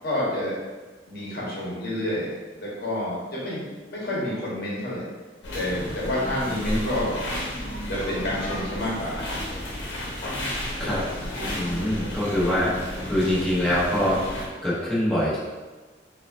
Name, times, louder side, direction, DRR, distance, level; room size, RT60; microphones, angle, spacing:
voice 1, 0.0-0.5 1.1-2.3 2.6-3.6 3.9-5.0 5.5-7.2 7.9-9.4, left 1 dB, 60° left, -6 dB, 1.0 m, -28 dB
sound 1, 5.4-14.5, left 1 dB, 85° left, 0.9 m, -32 dB
voice 2, 11.5-12.7 13.1-15.4, left 1 dB, 5° left, -10 dB, 1.0 m, -24 dB
4.8 x 2.4 x 2.5 m, 1.3 s
head